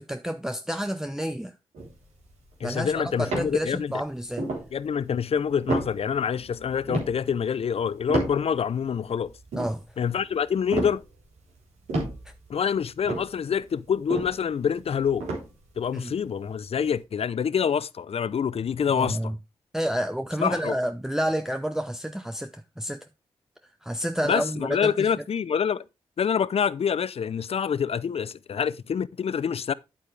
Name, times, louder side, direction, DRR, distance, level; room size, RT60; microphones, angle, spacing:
voice 1, 0.0-1.5 2.6-4.4 9.6-9.8 12.2-12.3 15.9-16.1 19.0-19.4 19.7-23.1 23.8-25.1, equal, 5° right, 0.8 m, -29 dB
sound 1, 1.7-4.0 4.3-4.7 5.2-5.3 5.4-8.8 9.2-11.6 11.9-15.9 16.3-16.4, right 2 dB, 85° right, 3.5 m, -31 dB
voice 2, 2.6-3.9 4.7-9.3 10.0-11.0 12.5-15.2 15.8-19.2 20.4-20.7 24.2-25.8 26.2-29.7, left 7 dB, 60° left, 0.6 m, -26 dB
8.8 x 8.5 x 3.2 m
supercardioid pair, 40°, 12 cm